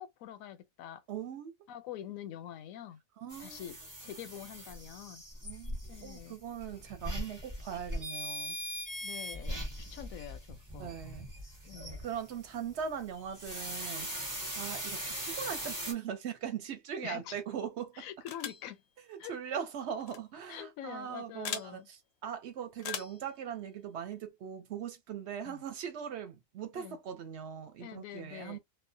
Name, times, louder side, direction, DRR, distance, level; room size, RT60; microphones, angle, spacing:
voice 1, 0.0-1.0 1.7-3.0 3.4-5.2 5.9-6.4 9.0-11.0 11.7-12.1 17.0-17.4 17.9-18.8 19.2-19.3 20.5-21.9 25.4-25.6 26.7-27.0 27.8-28.6, left 11 dB, 85° left, 1.0 m, -45 dB
voice 2, 1.1-1.5 3.2-3.7 5.4-5.8 6.0-8.6 10.8-11.3 12.0-14.3 14.6-18.0 19.1-22.0 22.2-28.6, right 8 dB, 65° right, 0.8 m, -40 dB
sound 1, 3.3-15.9, equal, 20° right, 0.6 m, -40 dB
sound 2, 18.3-18.7 20.0-20.2 21.4-21.7 22.8-23.2, left 8 dB, 65° left, 0.7 m, -39 dB
2.4 x 2.1 x 2.6 m
omnidirectional pair, 1.4 m